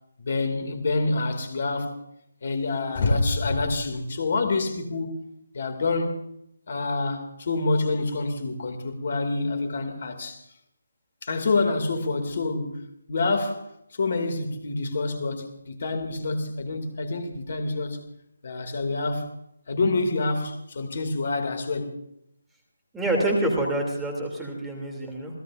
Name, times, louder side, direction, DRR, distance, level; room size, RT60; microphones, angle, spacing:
voice 1, 0.2-2.0 2.4-5.2 5.5-6.2 6.7-10.4 11.2-13.6 13.9-18.1 18.4-19.3 19.7-22.0, left 3 dB, 50° left, 2.4 m, -27 dB
voice 2, 22.9-25.4, right 1 dB, 5° right, 2.8 m, -26 dB
28.0 x 16.5 x 2.6 m
figure-of-eight pair, 155°, 0 cm